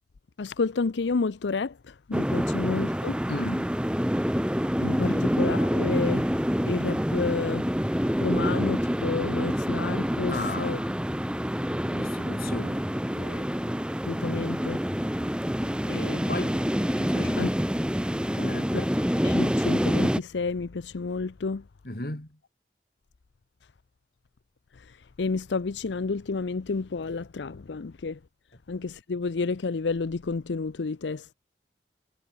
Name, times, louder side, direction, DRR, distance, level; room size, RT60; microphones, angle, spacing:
voice 1, 0.4-3.2 4.8-6.3 6.7-7.7 8.2-10.8 14.1-14.8 17.4-17.5 18.7-18.9 19.2-21.7 24.7-28.2 28.7-31.3, left 4 dB, 85° left, 0.6 m, -30 dB
sound 1, 2.1-20.2, equal, 5° right, 2.0 m, -27 dB
voice 2, 3.3-3.7 5.0-5.2 10.3-10.9 11.9-13.5 15.9-16.5 17.0-17.5 18.3-18.8 21.8-22.4, left 1 dB, 55° left, 2.7 m, -36 dB
head